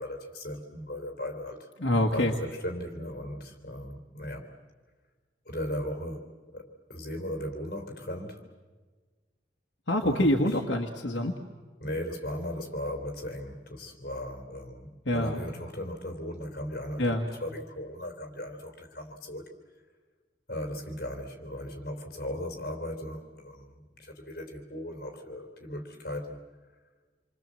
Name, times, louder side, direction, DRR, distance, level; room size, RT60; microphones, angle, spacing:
voice 1, 0.0-4.5 5.5-6.3 6.5-8.5 10.0-10.3 11.8-19.5 20.5-26.4, left 1 dB, 50° left, 3 dB, 3.5 m, -37 dB
voice 2, 1.8-2.3 9.9-11.4 15.1-15.4 17.0-17.3, left 1 dB, 75° left, 1 dB, 1.6 m, -26 dB
27.5 x 23.5 x 7.6 m, 1.4 s
head